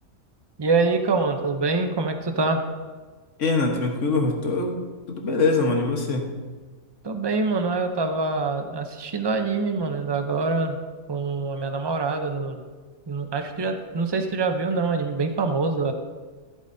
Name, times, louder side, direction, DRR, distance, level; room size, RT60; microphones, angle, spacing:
voice 1, 0.6-2.6 7.0-10.8 11.1-12.6 13.1-15.9, right 3 dB, 30° right, 6 dB, 0.5 m, -25 dB
voice 2, 3.4-4.8 5.1-6.3, left 3 dB, 60° left, 2 dB, 1.6 m, -23 dB
14.0 x 8.5 x 2.7 m, 1.4 s
omnidirectional pair, 1.5 m